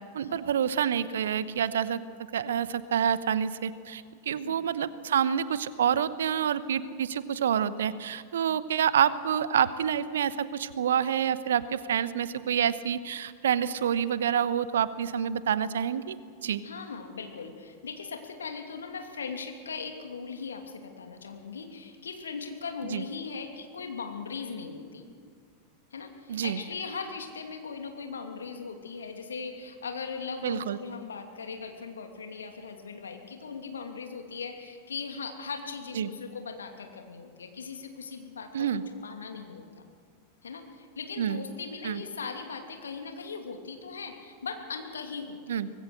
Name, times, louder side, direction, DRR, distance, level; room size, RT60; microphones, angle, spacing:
voice 1, 0.1-2.0 2.3-16.2 16.4-16.6 22.9-23.0 26.3-26.6 30.4-30.8 36.0-36.1 38.5-38.8 41.2-41.4 41.8-42.0 45.5-45.7, right 8 dB, 65° right, 16 dB, 0.9 m, -27 dB
voice 2, 16.6-25.1 25.9-38.7 39.0-39.7 40.4-45.7, left 5 dB, 70° left, 4 dB, 2.6 m, -39 dB
24.5 x 20.0 x 6.5 m, 2.1 s
figure-of-eight pair, 90°, 0 cm